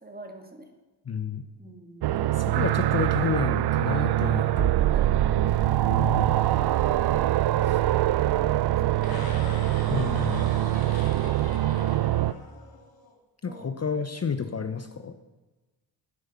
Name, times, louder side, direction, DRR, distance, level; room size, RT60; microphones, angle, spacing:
voice 1, 0.0-0.7 1.6-2.2 4.2-5.4 8.8-9.2 13.5-13.7, right 2 dB, 20° right, 4 dB, 2.1 m, -45 dB
voice 2, 1.1-1.4 2.3-4.7 5.9-6.4 7.6-7.8 9.9-10.5 10.9-11.0 13.4-15.1, left 6 dB, 35° left, 8 dB, 0.9 m, -31 dB
sound 1, 2.0-12.3, right 14 dB, 60° right, 0.5 m, -24 dB
sound 2, 9.0-13.1, left 4 dB, 55° left, 2.4 m, -42 dB
11.0 x 9.9 x 6.9 m, 1.1 s
cardioid pair, 100°, 45 cm